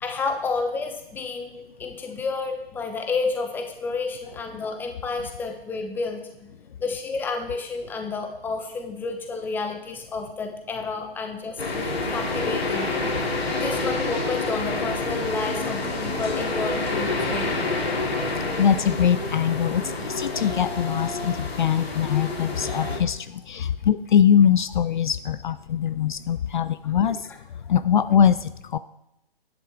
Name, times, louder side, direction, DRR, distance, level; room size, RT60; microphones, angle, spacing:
voice 1, 0.0-6.5 6.8-12.9 13.6-17.5, left 4 dB, 5° left, 4 dB, 0.8 m, -30 dB
sound 1, 11.6-23.0, left 2 dB, 85° left, 2.5 m, -28 dB
voice 2, 18.6-27.3 27.7-28.8, left 8 dB, 55° left, 14 dB, 0.4 m, -22 dB
10.5 x 10.5 x 3.4 m, 0.85 s
figure-of-eight pair, 140°, 30 cm